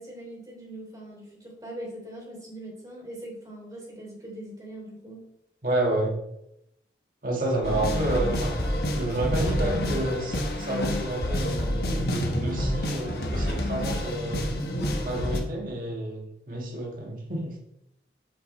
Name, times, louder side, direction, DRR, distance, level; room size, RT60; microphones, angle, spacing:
voice 1, 0.0-5.2 7.6-7.8, right 1 dB, 20° right, -2 dB, 3.2 m, -41 dB
voice 2, 5.6-6.2 7.2-8.5 8.9-14.5 15.0-17.6, right 1 dB, 50° right, 0 dB, 1.8 m, -30 dB
sound 1, 7.6-15.4, equal, 60° left, 1.4 m, -28 dB
8.0 x 8.0 x 3.2 m, 0.82 s
head